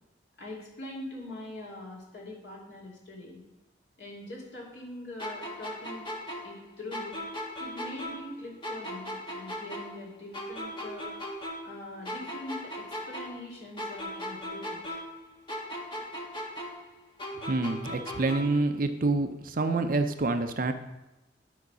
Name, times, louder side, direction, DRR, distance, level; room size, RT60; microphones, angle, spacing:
voice 1, 0.4-3.4 4.0-6.1 6.4-7.2 7.6-11.1 11.6-14.8, left 1 dB, 65° left, -4 dB, 2.6 m, -43 dB
sound 1, 5.2-8.4 8.6-11.8 12.1-15.2 15.5-18.6, equal, 25° left, 1.3 m, -38 dB
voice 2, 17.5-20.7, right 3 dB, 45° right, 8 dB, 0.5 m, -27 dB
10.5 x 3.9 x 6.1 m, 0.97 s
head